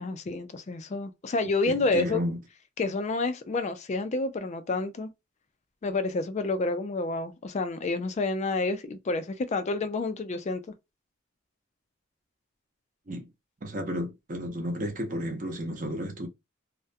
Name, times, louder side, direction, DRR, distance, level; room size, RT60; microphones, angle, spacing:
voice 1, 0.0-2.2 2.8-5.1 5.8-10.6, left 3 dB, 35° left, 0.3 m, -29 dB
voice 2, 1.7-2.4 13.1-13.3 13.6-16.3, equal, 40° right, 0.7 m, -32 dB
2.3 x 2.1 x 2.5 m
head